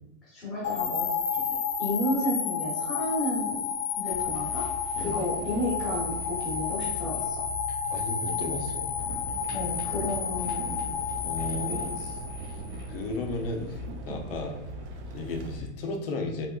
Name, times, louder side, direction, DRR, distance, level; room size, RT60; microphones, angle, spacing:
voice 1, 0.3-3.6 3.9-4.6 5.0-7.4 9.5-11.0 11.6-12.1, left 1 dB, ahead, -9 dB, 0.7 m, -32 dB
sound 1, 0.6-12.8, left 6 dB, 85° left, 0.8 m, -31 dB
sound 2, 4.1-15.7, left 1 dB, 20° right, 1.1 m, -41 dB
voice 2, 7.9-8.9 11.2-11.9 12.9-13.8 14.1-14.6 15.1-16.5, left 3 dB, 50° left, 2 dB, 0.4 m, -34 dB
sound 3, 9.0-15.6, right 3 dB, 65° right, 0.5 m, -42 dB
3.5 x 3.0 x 2.2 m, 0.92 s
supercardioid pair, 175°, 38 cm